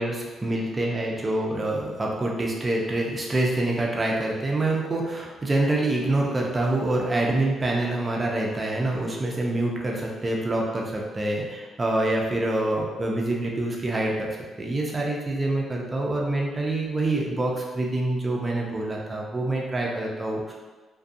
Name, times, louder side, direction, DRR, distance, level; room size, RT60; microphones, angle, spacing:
voice 1, 0.0-20.5, right 2 dB, 25° right, -1 dB, 0.5 m, -26 dB
2.4 x 2.2 x 2.6 m, 1.3 s
cardioid pair, 90°, 0 cm